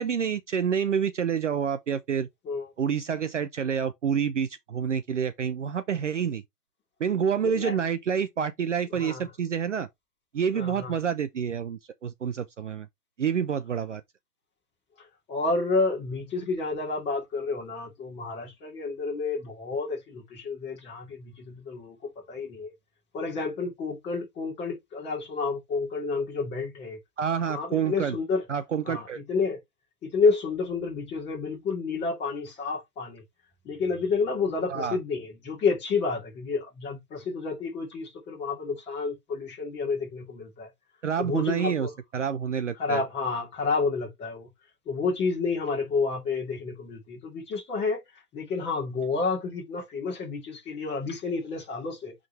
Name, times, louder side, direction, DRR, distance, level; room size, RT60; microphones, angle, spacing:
voice 1, 0.0-2.3 2.8-6.4 7.0-9.9 10.3-12.9 13.2-14.0 27.2-28.2 28.5-29.2 34.7-35.0 41.0-41.9 42.1-43.0, right 7 dB, 50° right, 0.6 m, -28 dB
voice 2, 7.4-7.8 8.9-9.3 10.5-11.0 15.0-22.7 23.1-27.0 27.5-28.4 28.8-29.6 30.0-33.2 33.6-40.7 41.2-41.9 42.8-44.5 44.9-52.1, left 4 dB, 10° left, 2.4 m, -30 dB
8.8 x 3.8 x 3.1 m
hypercardioid pair, 155°, 47 cm